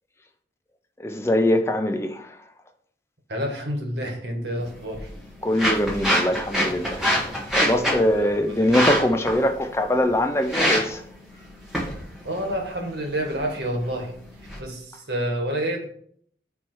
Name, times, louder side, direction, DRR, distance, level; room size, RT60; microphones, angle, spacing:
voice 1, 1.0-2.4 5.4-7.1 7.5-11.0, left 1 dB, 15° left, 0.4 m, -22 dB
voice 2, 3.3-5.1 8.1-8.7 12.2-14.1 14.6-15.9, right 1 dB, 75° right, 1.7 m, -29 dB
sound 1, 4.6-14.6, equal, 5° right, 1.7 m, -27 dB
9.4 x 3.4 x 4.5 m
head